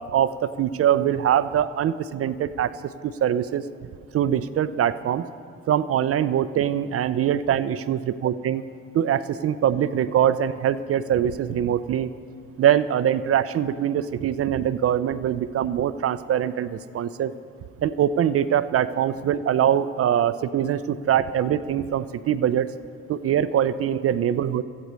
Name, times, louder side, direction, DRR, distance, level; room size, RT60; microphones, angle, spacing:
voice 1, 0.0-2.7 3.0-3.6 4.1-5.3 5.7-8.6 8.9-12.1 12.6-17.3 17.8-22.7 23.1-24.6, right 10 dB, 35° right, 14 dB, 0.4 m, -23 dB
16.5 x 14.0 x 3.2 m, 2.3 s
hypercardioid pair, 55°, 40 cm